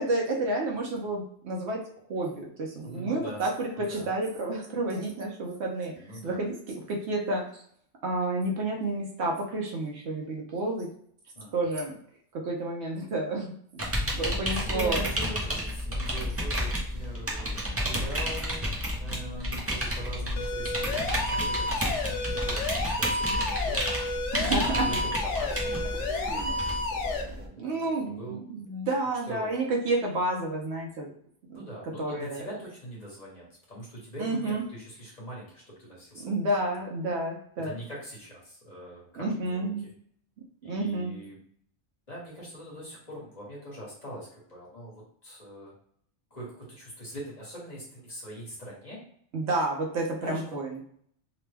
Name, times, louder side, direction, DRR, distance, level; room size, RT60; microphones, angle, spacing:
voice 1, 0.0-1.8 2.1-7.6 8.0-10.9 11.5-12.0 12.3-15.1 24.3-24.9 26.1-26.6 27.6-31.1 31.5-32.5 34.2-34.7 36.2-37.8 39.2-39.9 40.6-41.1 49.3-50.8, right 2 dB, 70° right, 0 dB, 0.9 m, -30 dB
voice 2, 2.8-3.4 3.8-4.1 5.9-6.4 11.3-11.6 14.6-23.8 24.6-28.4 29.3-29.5 31.5-36.3 37.6-39.9 40.6-41.4 42.1-45.7 46.3-49.0 50.2-50.5, right 1 dB, 35° left, -6 dB, 1.2 m, -42 dB
sound 1, 13.8-27.5, equal, 20° right, 0.4 m, -31 dB
sound 2, 20.4-27.2, left 2 dB, 80° left, 0.9 m, -31 dB
2.9 x 2.1 x 3.3 m, 0.65 s
omnidirectional pair, 1.2 m